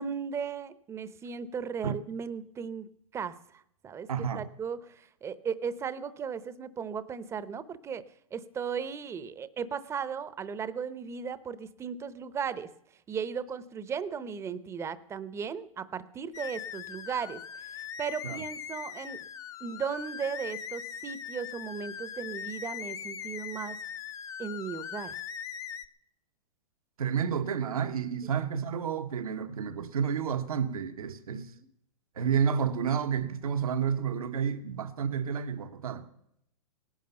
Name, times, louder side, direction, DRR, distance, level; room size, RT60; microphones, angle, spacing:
voice 1, 0.0-2.9 3.1-12.7 13.1-17.4 17.7-19.3 19.6-23.8 24.4-25.2 28.2-28.3 31.3-31.7, right 6 dB, 15° right, 0.8 m, -36 dB
voice 2, 4.1-4.5 18.2-18.4 27.0-31.5 32.2-36.0, right 7 dB, 85° right, 1.4 m, -30 dB
sound 1, 16.3-25.8, left 8 dB, 20° left, 0.6 m, -40 dB
18.0 x 10.5 x 6.9 m
hypercardioid pair, 135°, 18 cm